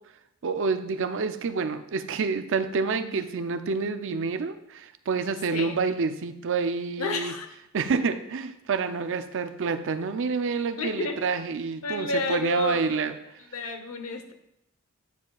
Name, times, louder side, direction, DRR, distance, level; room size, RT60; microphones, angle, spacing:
voice 1, 0.4-7.3 7.7-13.1, right 5 dB, 60° right, 10 dB, 0.5 m, -28 dB
voice 2, 7.0-7.5 10.8-11.2 11.8-13.1 13.5-14.3, left 3 dB, 75° left, 7 dB, 0.8 m, -31 dB
9.2 x 7.3 x 2.3 m, 0.82 s
head